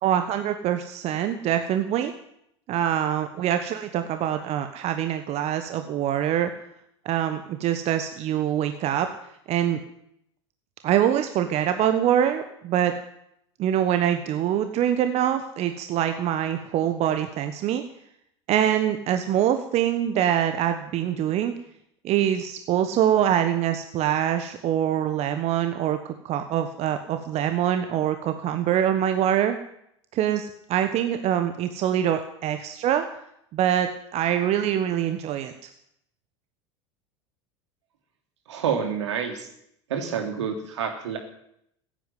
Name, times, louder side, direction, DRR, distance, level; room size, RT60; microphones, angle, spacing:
voice 1, 0.0-2.1 2.7-6.5 7.0-9.1 9.5-9.8 10.8-12.9 13.6-17.8 18.5-21.5 22.0-29.6 30.1-33.0 33.5-35.5, right 10 dB, 45° right, 8 dB, 1.3 m, -24 dB
voice 2, 38.5-39.5 39.9-41.2, right 7 dB, 75° right, 4 dB, 3.1 m, -28 dB
15.5 x 9.1 x 9.3 m, 0.75 s
hypercardioid pair, 80°, 15 cm